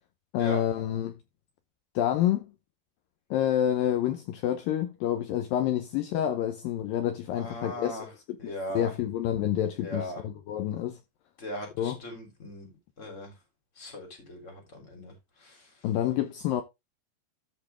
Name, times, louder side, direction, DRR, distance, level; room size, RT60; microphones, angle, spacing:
voice 1, 0.3-1.2 2.0-2.5 3.3-8.0 8.3-11.0 11.8-12.0 15.8-16.6, left 11 dB, 80° left, 2.2 m, -28 dB
voice 2, 7.3-8.1 8.4-8.9 9.8-10.2 11.4-12.7 13.0-13.3 13.8-15.7, left 1 dB, 20° left, 2.9 m, -38 dB
13.5 x 4.8 x 3.4 m
omnidirectional pair, 4.8 m